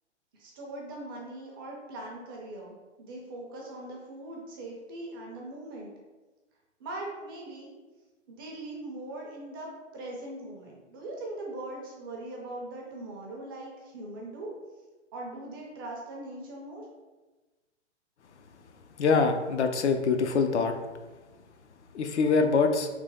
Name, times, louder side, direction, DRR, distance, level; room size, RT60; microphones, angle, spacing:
voice 1, 0.3-5.9 6.8-7.7 8.3-14.5 15.1-16.8, right 2 dB, 20° right, -2 dB, 0.4 m, -40 dB
voice 2, 19.0-20.8 21.9-22.9, left 4 dB, 70° left, 6 dB, 0.5 m, -24 dB
3.3 x 2.8 x 3.4 m, 1.2 s
figure-of-eight pair, 120°, 36 cm